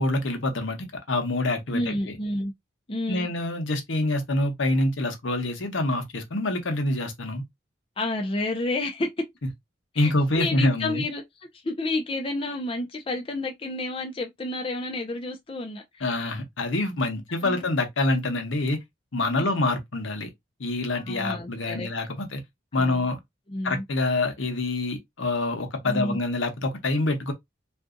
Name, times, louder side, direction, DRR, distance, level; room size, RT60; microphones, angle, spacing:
voice 1, 0.0-2.0 3.1-7.4 10.0-11.0 16.0-18.8 19.1-20.3 20.6-22.4 22.7-23.2 23.6-27.3, left 2 dB, 80° left, 0.9 m, -26 dB
voice 2, 1.7-2.5 2.9-3.3 8.0-9.1 9.9-11.2 11.6-16.1 17.4-17.6 19.3-19.5 21.0-21.9 22.7-23.0 23.5-23.8 25.8-26.2, left 2 dB, 25° left, 0.5 m, -30 dB
2.6 x 2.3 x 3.7 m
head